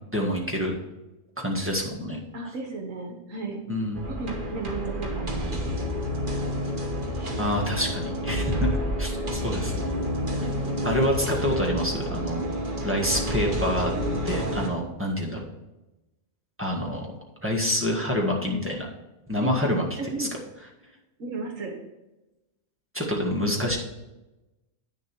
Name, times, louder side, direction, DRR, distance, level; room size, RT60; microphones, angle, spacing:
voice 1, 0.1-0.8 1.4-2.2 3.7-4.0 7.4-10.0 10.8-12.4 12.8-13.9 14.2-15.4 16.6-17.1 17.4-18.9 19.3-19.8 20.2-20.3 22.9-23.8, equal, 10° right, -1 dB, 1.6 m, -27 dB
voice 2, 2.3-3.6 4.2-5.9 9.1-9.4 19.4-20.3 21.2-21.7, right 3 dB, 75° right, 1 dB, 1.7 m, -34 dB
sound 1, 3.9-14.7, equal, 40° right, 1.4 m, -29 dB
9.1 x 6.8 x 4.6 m, 1.0 s
omnidirectional pair, 1.4 m